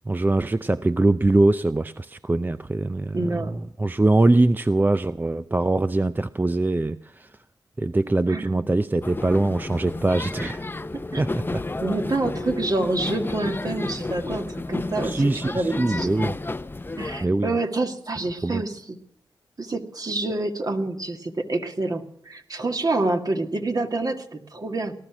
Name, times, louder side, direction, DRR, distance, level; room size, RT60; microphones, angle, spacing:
voice 1, 0.1-3.5 3.8-7.3 7.8-10.6 11.2-11.6 15.0-16.4 17.2-17.5 18.4-18.6, right 2 dB, 20° right, 13 dB, 0.5 m, -22 dB
voice 2, 3.1-3.6 8.3-8.7 10.9-11.2 11.8-16.1 17.0-19.0 19.6-24.9, right 2 dB, 45° right, 5 dB, 2.0 m, -27 dB
sound 1, 9.0-17.3, left 2 dB, 25° left, 0.7 m, -31 dB
18.5 x 12.0 x 6.0 m, 0.75 s
cardioid pair, 45°, 9 cm